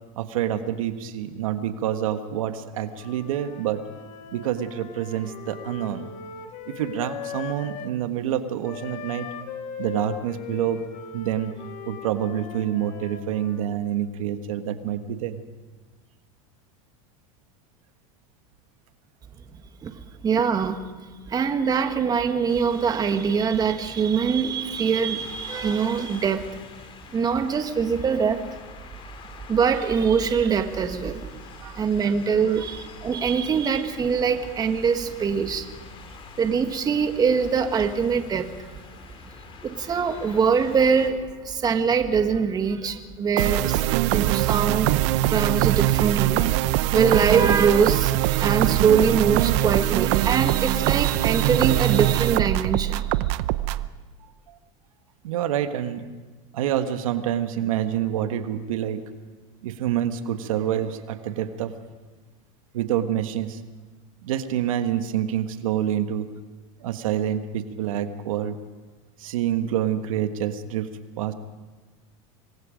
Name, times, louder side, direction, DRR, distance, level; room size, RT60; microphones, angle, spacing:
voice 1, 0.2-3.8 4.3-6.1 6.7-9.3 9.8-10.8 11.1-11.5 11.9-15.4 31.6-32.1 32.5-32.6 55.2-56.0 56.5-59.0 59.6-61.7 62.7-63.6 64.2-66.3 66.8-68.6 69.2-70.9 71.2-71.3, right 10 dB, 90° right, 8 dB, 1.5 m, -27 dB
Wind instrument woodwind instrument, 2.9-7.9 8.6-13.6, left 8 dB, 55° left, 3.2 m, -39 dB
voice 2, 20.2-20.8 21.3-26.4 27.1-28.4 29.5-31.2 31.8-35.7 36.4-38.7 39.6-43.8 44.1-45.0 45.3-53.1, right 6 dB, 25° right, 7 dB, 1.5 m, -23 dB
sound 1, 22.5-41.1, left 6 dB, 30° left, 2.6 m, -45 dB
sound 2, 43.4-53.9, right 16 dB, 65° right, 0.7 m, -22 dB
25.5 x 20.5 x 5.2 m, 1.3 s
supercardioid pair, 135°, 17 cm